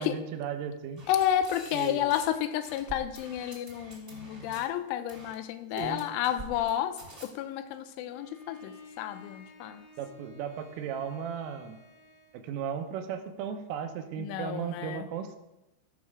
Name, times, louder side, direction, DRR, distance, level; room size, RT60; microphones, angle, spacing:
voice 1, 0.0-1.0 1.7-2.1 5.7-6.1 10.0-11.8 12.3-15.4, right 8 dB, 85° right, 6 dB, 3.5 m, -36 dB
sound 1, 1.0-2.4 2.6-4.6 5.1-5.3 5.8-6.7 7.0-7.2, right 1 dB, 25° right, 1.3 m, -46 dB
voice 2, 1.1-9.9 14.2-15.1, left 11 dB, 85° left, 11 dB, 3.0 m, -31 dB
Bowed string instrument, 8.1-12.5, left 4 dB, 60° left, 2.7 m, -53 dB
16.5 x 6.2 x 4.8 m, 0.97 s
omnidirectional pair, 5.7 m